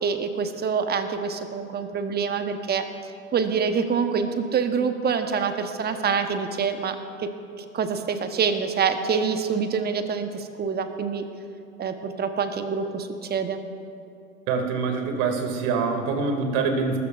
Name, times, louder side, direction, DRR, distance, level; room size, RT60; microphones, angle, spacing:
voice 1, 0.0-2.8 3.3-7.3 7.6-11.2 11.8-13.6, right 6 dB, 25° right, 8 dB, 1.0 m, -26 dB
voice 2, 14.5-17.0, right 4 dB, 55° right, 4 dB, 2.4 m, -25 dB
20.5 x 13.5 x 2.5 m, 2.6 s
hypercardioid pair, 95°, 41 cm